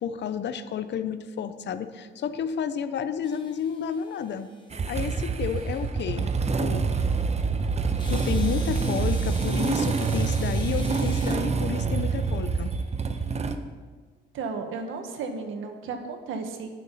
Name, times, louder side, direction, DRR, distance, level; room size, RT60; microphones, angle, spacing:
voice 1, 0.0-4.5 4.9-6.9 8.1-12.7, left 7 dB, 60° left, 11 dB, 0.8 m, -31 dB
sound 1, 3.2-5.9 8.0-11.4, left 2 dB, 25° left, 2.1 m, -45 dB
Motorcycle / Engine starting, 4.7-13.6, right 4 dB, 35° right, 1.0 m, -26 dB
voice 2, 14.3-16.7, right 4 dB, 85° right, 5 dB, 1.6 m, -34 dB
20.0 x 6.9 x 4.2 m, 1.4 s
cardioid pair, 90°, 20 cm